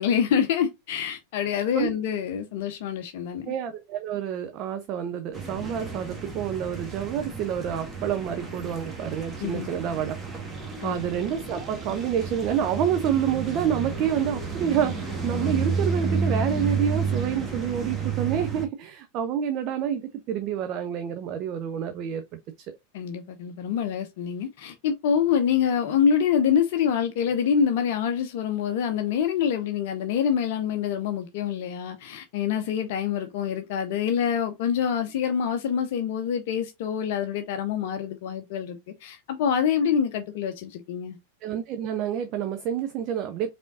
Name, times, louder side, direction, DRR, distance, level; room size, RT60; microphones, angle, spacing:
voice 1, 0.0-3.5 9.4-9.7 10.8-11.0 22.9-41.2, left 8 dB, 50° left, 0.6 m, -26 dB
voice 2, 3.5-10.2 10.5-20.0 20.3-22.2 22.7-22.8 41.4-43.5, right 9 dB, 40° right, 0.5 m, -28 dB
sound 1, 5.3-18.7, right 4 dB, 15° right, 1.3 m, -31 dB
5.1 x 3.4 x 2.6 m
figure-of-eight pair, 90°, 0 cm